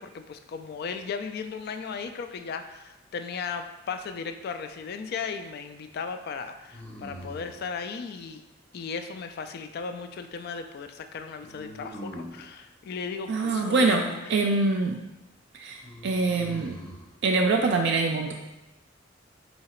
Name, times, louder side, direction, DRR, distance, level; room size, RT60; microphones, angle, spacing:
voice 1, 0.0-8.4 8.7-14.3, left 5 dB, 50° left, 8 dB, 0.3 m, -36 dB
sound 1, 4.0-4.6 6.7-7.7 11.4-12.5 15.8-17.1, equal, 5° left, 0.6 m, -42 dB
voice 2, 13.3-15.0 15.5-16.8 17.2-18.3, right 3 dB, 60° right, 1 dB, 0.4 m, -24 dB
3.9 x 2.8 x 4.3 m, 0.99 s
head